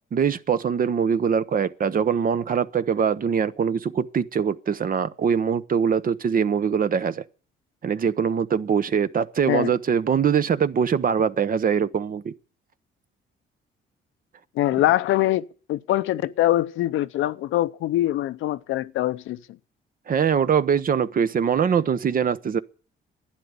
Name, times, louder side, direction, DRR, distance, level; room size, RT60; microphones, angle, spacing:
voice 1, 0.1-7.2 7.8-12.3 20.1-22.6, right 7 dB, 45° right, 0.8 m, -23 dB
voice 2, 14.6-19.4, left 14 dB, 80° left, 0.7 m, -23 dB
11.5 x 9.5 x 9.6 m
cardioid pair, 90°, 20 cm